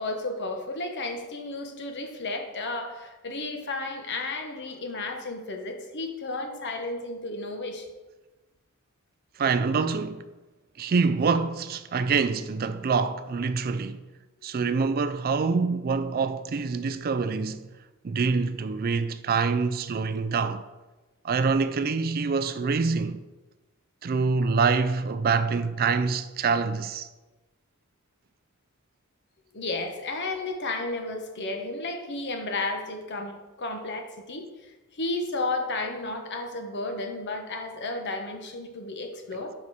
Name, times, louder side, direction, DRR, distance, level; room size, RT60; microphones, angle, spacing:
voice 1, 0.0-7.9 29.5-39.5, left 2 dB, 50° left, 1.2 m, -33 dB
voice 2, 9.4-10.3 10.8-14.0 14.4-17.7 18.0-20.6 21.2-23.2 24.0-27.1, right 4 dB, 45° right, 0.4 m, -25 dB
9.5 x 6.4 x 4.2 m
head